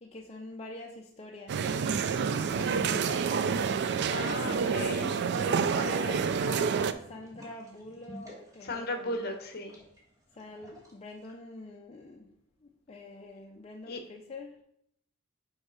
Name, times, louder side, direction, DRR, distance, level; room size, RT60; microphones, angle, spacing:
voice 1, 0.0-1.6 2.2-3.6 4.4-5.1 5.3-9.2 10.4-12.3 12.6-14.6, left 2 dB, 30° left, 0 dB, 0.5 m, -45 dB
sound 1, 1.5-6.9, right 6 dB, 55° right, 0.4 m, -28 dB
voice 2, 4.1-5.3 8.6-9.7 13.9-14.0, left 2 dB, 50° left, 6 dB, 1.0 m, -36 dB
sound 2, 7.0-11.3, equal, 15° right, 1.4 m, -49 dB
5.3 x 4.8 x 4.8 m, 0.73 s
head